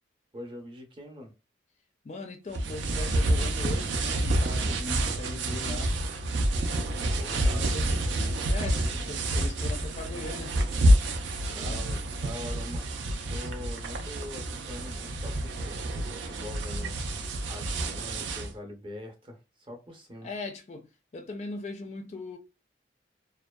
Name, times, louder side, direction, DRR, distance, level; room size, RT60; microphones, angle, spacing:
voice 1, 0.3-1.3 7.1-7.7 11.4-12.9 13.3-17.2 17.5-20.3, left 1 dB, 25° right, 0.6 m, -43 dB
voice 2, 2.0-6.0 7.2-10.6 11.5-11.8 20.2-22.4, left 2 dB, 35° left, 0.3 m, -40 dB
sound 1, 2.5-18.5, right 1 dB, 75° right, 0.4 m, -28 dB
2.5 x 2.2 x 2.2 m
head